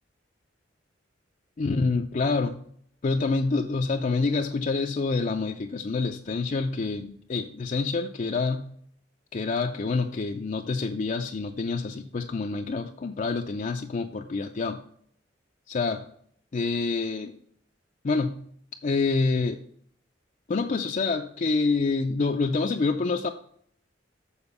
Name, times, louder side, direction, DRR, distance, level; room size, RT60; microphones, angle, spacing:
voice 1, 1.6-2.6 3.0-8.8 9.3-14.8 15.7-16.1 16.5-17.3 18.0-18.5 18.8-19.6 20.5-23.3, left 3 dB, 45° left, 4 dB, 0.4 m, -27 dB
7.1 x 4.3 x 6.8 m, 0.64 s
head